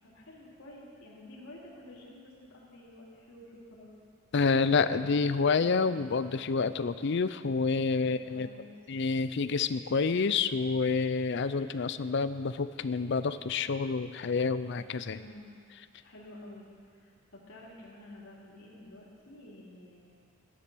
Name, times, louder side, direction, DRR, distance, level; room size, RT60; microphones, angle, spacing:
voice 1, 0.0-3.9 8.0-8.7 15.1-15.5 16.0-16.7 17.0-20.1, left 1 dB, 75° left, -5 dB, 3.0 m, -50 dB
voice 2, 4.3-8.5 8.9-15.2, left 4 dB, 55° left, 12 dB, 0.5 m, -28 dB
14.0 x 10.5 x 6.2 m, 2.2 s
head